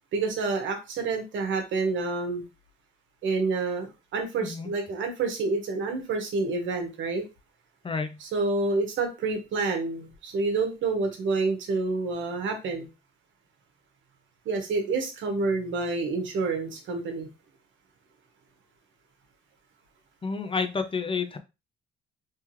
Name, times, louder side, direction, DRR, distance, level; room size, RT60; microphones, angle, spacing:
voice 1, 0.1-2.4 3.2-7.2 8.2-12.9 14.4-17.3, right 3 dB, 75° right, 4 dB, 1.3 m, -28 dB
voice 2, 4.4-4.7 7.8-8.2 20.2-21.4, left 5 dB, 25° left, 8 dB, 0.6 m, -30 dB
3.5 x 3.1 x 3.0 m, 0.27 s
cardioid pair, 90°, 20 cm